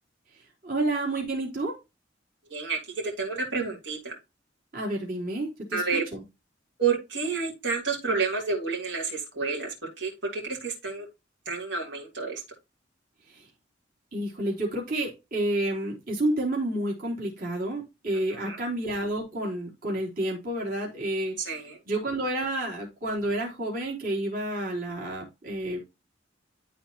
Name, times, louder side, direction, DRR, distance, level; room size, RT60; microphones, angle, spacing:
voice 1, 0.6-1.8 4.7-6.2 13.3-13.4 14.1-25.8, right 1 dB, 50° right, -2 dB, 3.9 m, -30 dB
voice 2, 3.0-4.1 5.7-6.0 6.8-11.1 11.5-12.4 18.3-18.6 21.4-21.8, right 5 dB, 70° right, -2 dB, 4.0 m, -30 dB
13.0 x 4.4 x 3.0 m, 0.25 s
head